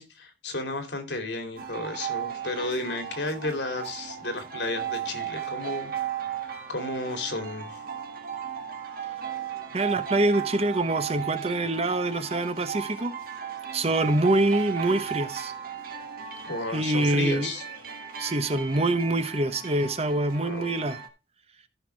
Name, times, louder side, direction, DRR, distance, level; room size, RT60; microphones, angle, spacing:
voice 1, 0.0-5.9 6.4-7.8 16.4-17.6 20.4-20.7, left 2 dB, 75° left, 2.8 m, -33 dB
sound 1, 1.6-21.1, right 8 dB, 55° right, 1.6 m, -36 dB
voice 2, 9.7-13.1 13.7-15.5 16.7-17.5 18.2-21.0, right 1 dB, 35° right, 1.0 m, -25 dB
14.0 x 5.9 x 3.3 m
head